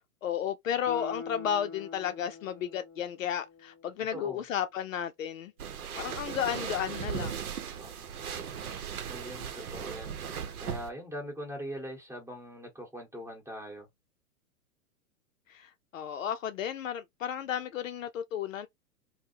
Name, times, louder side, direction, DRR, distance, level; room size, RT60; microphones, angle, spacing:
voice 1, 0.2-5.5 5.9-7.3 15.5-18.7, left 9 dB, 60° left, 0.5 m, -33 dB
Guitar, 0.8-4.1 4.5-4.6, left 5 dB, 10° left, 0.6 m, -44 dB
voice 2, 4.1-4.4 7.8-8.1 9.0-10.2 10.6-13.9, equal, 5° right, 1.6 m, -41 dB
sound 1, 5.6-10.9, right 7 dB, 75° right, 0.8 m, -37 dB
3.4 x 2.1 x 2.7 m
hypercardioid pair, 120°, 44 cm